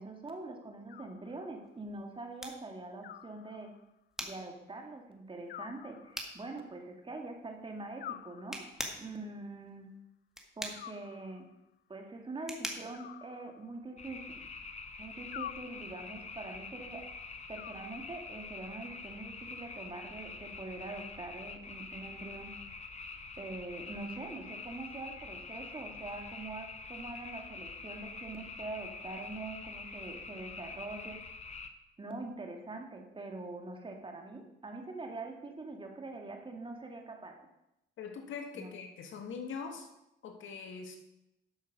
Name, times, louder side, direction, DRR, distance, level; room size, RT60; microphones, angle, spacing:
voice 1, 0.0-3.7 4.2-8.6 9.0-9.9 10.6-11.5 11.9-14.5 15.0-17.0 17.5-22.5 23.4-31.2 32.0-37.4 38.5-38.7, right 2 dB, 25° right, 3 dB, 2.0 m, -44 dB
Animal, 0.9-1.8 3.0-4.0 5.5-6.6 8.0-9.0 10.7-11.6 12.9-14.0 15.3-16.2 17.5-18.5, left 11 dB, 55° left, 0.4 m, -48 dB
sound 1, 1.6-14.2, equal, ahead, 1.9 m, -46 dB
sound 2, 14.0-31.7, left 4 dB, 35° left, 1.1 m, -46 dB
voice 2, 38.0-39.9 40.2-41.0, left 5 dB, 75° left, 4 dB, 1.8 m, -42 dB
12.5 x 6.4 x 5.3 m, 0.88 s
cardioid pair, 90°, 20 cm